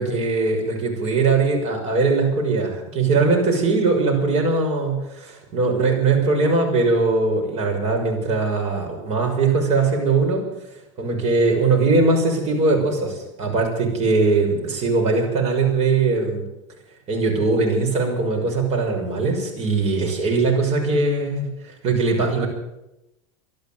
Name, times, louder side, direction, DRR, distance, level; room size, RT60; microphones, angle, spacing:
voice 1, 0.0-10.5 11.0-16.5 17.1-22.5, right 3 dB, 45° right, 1 dB, 6.1 m, -20 dB
13.0 x 11.5 x 9.1 m, 0.91 s
supercardioid pair, 110°, 16 cm